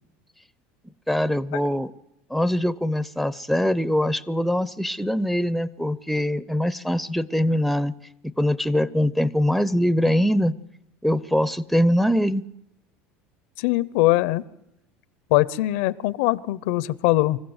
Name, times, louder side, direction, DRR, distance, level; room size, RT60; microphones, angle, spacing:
voice 1, 1.1-1.9 2.3-7.9 8.4-10.5 11.0-12.4, equal, ahead, 15 dB, 0.7 m, -23 dB
voice 2, 13.6-14.4 15.3-17.4, left 17 dB, 80° left, 18 dB, 0.8 m, -21 dB
25.5 x 14.5 x 8.0 m, 0.90 s
supercardioid pair, 115°, 5 cm